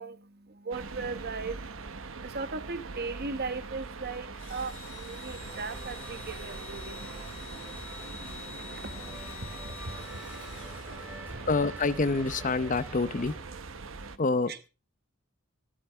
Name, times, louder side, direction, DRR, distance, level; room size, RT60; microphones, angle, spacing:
voice 1, 0.0-11.5 13.8-14.2 14.5-14.6, right 4 dB, 50° right, 1.2 m, -40 dB
sound 1, 0.7-14.2, right 4 dB, 80° right, 1.0 m, -42 dB
Engine / Drill, 4.3-11.6, left 6 dB, 70° left, 5.0 m, -47 dB
sound 2, 5.3-13.4, right 1 dB, 10° right, 4.9 m, -46 dB
voice 2, 11.5-13.3 14.2-14.7, left 3 dB, 40° left, 0.8 m, -27 dB
14.0 x 12.5 x 3.4 m
head